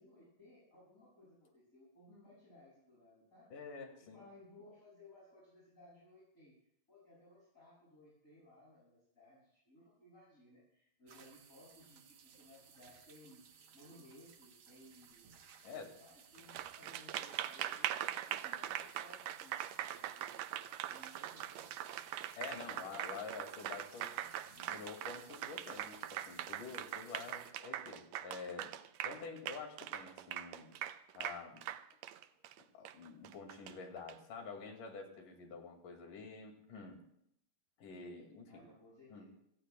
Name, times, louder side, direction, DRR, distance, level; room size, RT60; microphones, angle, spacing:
voice 1, 0.0-3.6 4.0-6.6 6.9-15.4 15.7-21.8 38.2-39.3, left 1 dB, 20° left, -8 dB, 7.5 m, -61 dB
voice 2, 3.5-4.2 15.6-15.9 22.4-24.2 24.5-28.7 29.0-30.7 31.2-31.7 32.7-37.0 37.8-38.7 39.1-39.3, left 5 dB, 70° left, 3 dB, 3.8 m, -48 dB
sound 1, 11.1-27.5, right 7 dB, 65° right, 1.2 m, -60 dB
Applause, 16.4-34.1, right 12 dB, 85° right, 1.5 m, -42 dB
28.5 x 17.5 x 2.3 m, 0.76 s
omnidirectional pair, 3.9 m